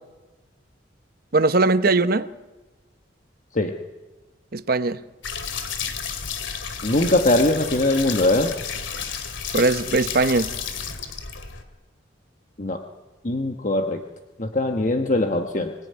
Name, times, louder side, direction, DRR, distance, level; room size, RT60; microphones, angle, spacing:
voice 1, 1.3-2.3 4.5-5.0 9.5-10.5, right 3 dB, 50° right, 0.8 m, -20 dB
sound 1, 5.2-11.6, left 7 dB, 85° left, 2.3 m, -31 dB
voice 2, 6.8-8.5 12.6-12.8 13.2-14.0 14.4-15.7, left 2 dB, 40° left, 1.2 m, -21 dB
24.5 x 18.5 x 9.6 m
head